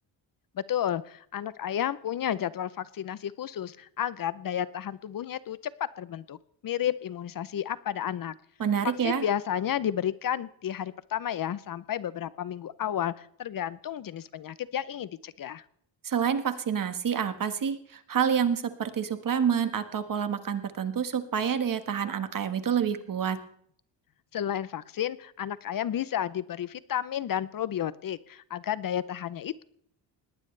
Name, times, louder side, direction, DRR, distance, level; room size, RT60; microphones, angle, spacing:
voice 1, 0.6-6.4 6.6-8.3 9.0-15.6 24.3-29.6, left 10 dB, 50° left, 17 dB, 0.7 m, -32 dB
voice 2, 8.6-9.2 16.0-23.4, right 7 dB, 45° right, 9 dB, 1.5 m, -28 dB
20.0 x 18.5 x 3.3 m, 0.66 s
cardioid pair, 105°, 44 cm